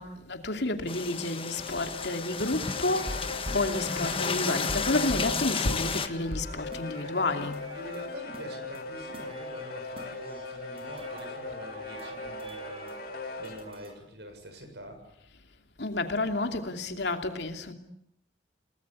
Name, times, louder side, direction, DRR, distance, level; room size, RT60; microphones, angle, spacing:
voice 1, 0.0-3.3 3.5-7.6 15.8-17.7, left 2 dB, 70° left, 2.8 m, -30 dB
sound 1, 0.9-6.1, left 5 dB, 30° left, 1.5 m, -32 dB
sound 2, 1.1-13.7, left 3 dB, 55° left, 2.6 m, -40 dB
sound 3, 2.9-13.9, equal, 30° right, 6.1 m, -44 dB
voice 2, 7.7-15.1, equal, 70° right, 7.1 m, -46 dB
29.5 x 19.5 x 8.4 m
head